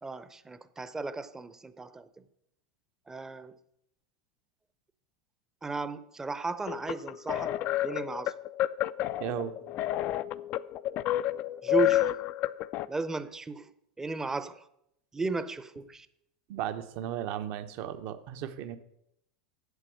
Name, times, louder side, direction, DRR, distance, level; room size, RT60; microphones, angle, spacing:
voice 1, 0.0-2.1 3.1-3.6 5.6-7.5 7.8-8.4 11.6-12.1 12.9-13.7 14.0-14.6 15.1-16.1, right 4 dB, 15° right, 0.7 m, -35 dB
sound 1, 6.7-12.9, left 14 dB, 45° left, 0.4 m, -30 dB
voice 2, 9.2-9.5 16.5-18.8, right 10 dB, 55° right, 0.9 m, -35 dB
8.1 x 7.6 x 6.4 m
hypercardioid pair, 95°, 4 cm